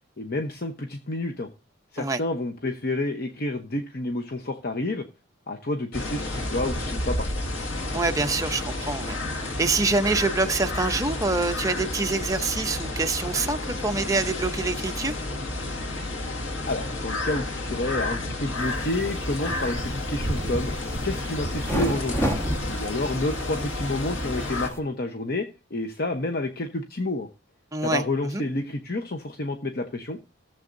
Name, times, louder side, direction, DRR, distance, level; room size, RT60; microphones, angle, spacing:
voice 1, 0.2-1.5 1.9-5.1 5.5-7.3 16.7-20.7 21.0-22.3 22.7-27.3 27.8-30.2, left 2 dB, 50° left, 0.9 m, -29 dB
sound 1, 5.9-24.7, left 2 dB, 90° left, 1.9 m, -31 dB
voice 2, 7.9-9.2 9.6-15.1 27.7-28.4, right 3 dB, 15° right, 0.7 m, -26 dB
sound 2, 18.6-24.8, right 1 dB, 15° left, 1.3 m, -32 dB
16.0 x 7.4 x 2.6 m
head